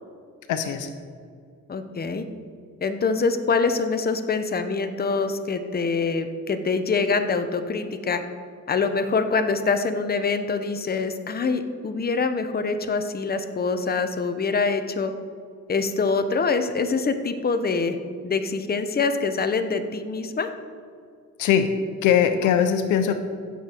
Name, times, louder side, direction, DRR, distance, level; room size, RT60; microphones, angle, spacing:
voice 1, 0.5-0.9 21.4-21.7 22.0-23.2, left 8 dB, 90° left, 8 dB, 0.9 m, -21 dB
voice 2, 1.7-2.2 2.8-8.2 8.7-15.1 15.7-18.0 18.2-20.5, left 4 dB, 30° left, 8 dB, 1.0 m, -25 dB
15.5 x 6.8 x 4.6 m, 2.3 s
cardioid pair, 90°, 30 cm